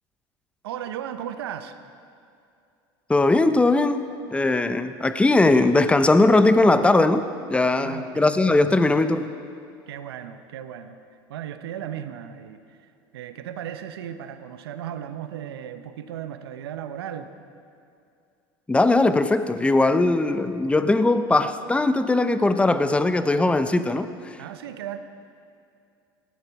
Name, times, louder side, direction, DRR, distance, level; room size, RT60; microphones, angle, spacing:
voice 1, 0.6-1.7 7.8-8.3 9.9-11.0 11.3-17.3 24.4-25.0, right 10 dB, 85° right, 9 dB, 0.9 m, -36 dB
voice 2, 3.1-4.0 4.3-9.3 18.7-24.1, left 2 dB, 10° left, 11 dB, 0.7 m, -19 dB
17.5 x 13.5 x 4.7 m, 2.5 s
hypercardioid pair, 90°, 13 cm